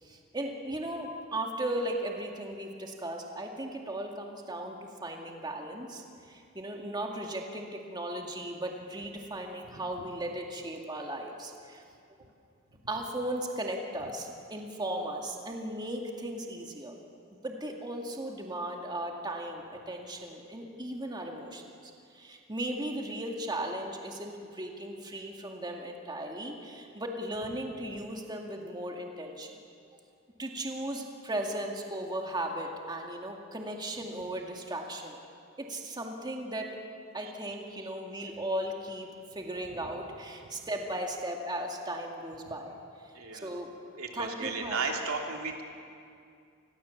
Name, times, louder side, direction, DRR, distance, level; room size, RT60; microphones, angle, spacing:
voice 1, 0.0-11.8 12.9-17.0 17.3-29.6 30.4-35.2 35.6-36.8 37.1-43.1 43.4-43.7 44.1-44.8, right 1 dB, 20° right, 1 dB, 2.2 m, -37 dB
voice 2, 43.1-43.5 44.0-45.6, right 4 dB, 75° right, 1 dB, 3.1 m, -34 dB
29.0 x 20.5 x 7.2 m, 2.4 s
head